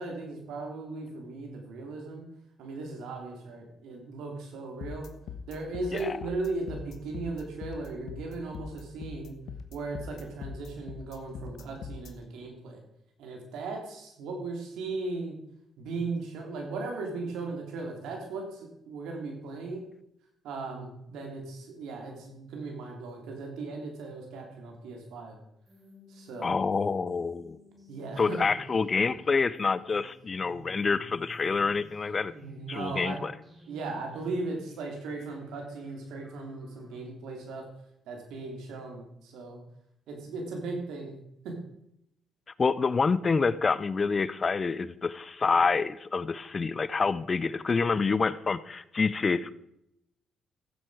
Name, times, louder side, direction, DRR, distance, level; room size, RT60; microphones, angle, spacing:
voice 1, 0.0-2.2 2.6-5.1 5.5-9.4 9.7-12.8 13.2-15.4 15.8-19.8 20.4-25.4 26.1-26.5 27.9-28.5 32.3-33.2 33.7-37.6 38.1-39.6 40.1-41.1 41.4-41.5, right 3 dB, 85° right, 2 dB, 3.1 m, -37 dB
sound 1, 4.8-12.1, left 6 dB, 70° left, 1.2 m, -41 dB
sound 2, 25.7-37.0, left 1 dB, 25° right, 3.3 m, -54 dB
voice 2, 26.4-27.6 28.2-32.3 32.7-33.3 42.6-49.5, left 4 dB, 35° left, 16 dB, 0.6 m, -27 dB
15.0 x 7.7 x 4.9 m, 0.78 s
cardioid pair, 90°, 0 cm